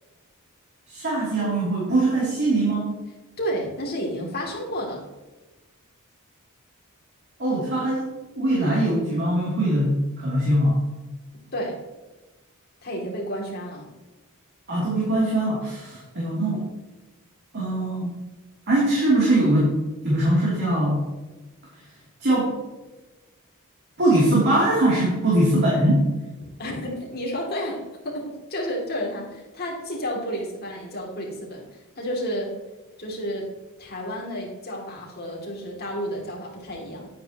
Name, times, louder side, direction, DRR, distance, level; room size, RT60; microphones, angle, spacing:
voice 1, 0.9-2.9 7.4-8.1 8.3-10.8 14.7-16.7 17.5-18.2 18.7-19.7 20.0-21.0 22.2-22.5 24.0-26.0, right 1 dB, 50° right, -6 dB, 3.1 m, -21 dB
voice 2, 3.4-5.0 11.5-11.8 12.8-13.9 24.2-24.3 26.6-32.5 33.0-33.5 33.8-37.1, equal, 45° left, -2 dB, 2.8 m, -31 dB
10.0 x 9.3 x 3.0 m, 1.2 s
head